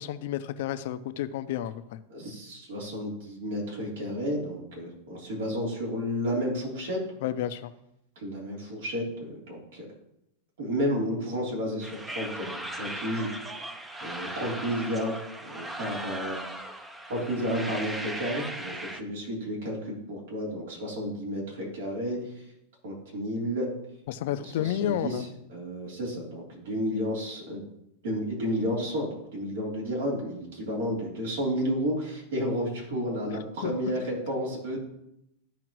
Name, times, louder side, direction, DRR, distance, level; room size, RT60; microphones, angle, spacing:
voice 1, 0.0-2.0 7.2-7.7 24.1-25.3 33.6-34.0, left 11 dB, 65° left, 12 dB, 0.5 m, -31 dB
voice 2, 2.1-7.0 8.2-9.9 10.6-13.3 14.0-15.1 15.4-16.4 17.1-22.2 22.8-23.7 24.6-25.2 25.5-27.6 28.0-34.8, equal, 80° right, -3 dB, 3.6 m, -31 dB
sound 1, 11.8-19.0, right 1 dB, 10° right, 0.5 m, -38 dB
14.0 x 4.9 x 3.1 m, 0.83 s
supercardioid pair, 150°, 0 cm